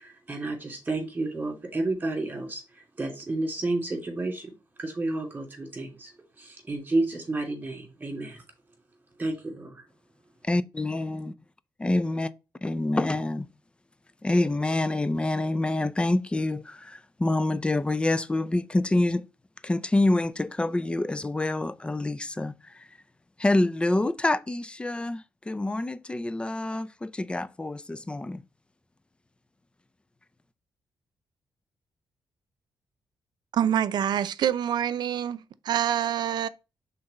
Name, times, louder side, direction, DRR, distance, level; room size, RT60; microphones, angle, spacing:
voice 1, 0.0-2.6 3.0-4.5 4.8-6.1 6.4-8.4 9.2-9.7, right 2 dB, 20° right, 3.0 m, -31 dB
voice 2, 10.5-11.3 11.8-12.3 12.6-13.5 14.2-19.2 19.6-22.9 23.4-28.4, left 2 dB, 15° left, 0.4 m, -27 dB
voice 3, 33.5-36.5, right 10 dB, 70° right, 0.5 m, -26 dB
5.7 x 4.0 x 5.2 m
cardioid pair, 110°, 8 cm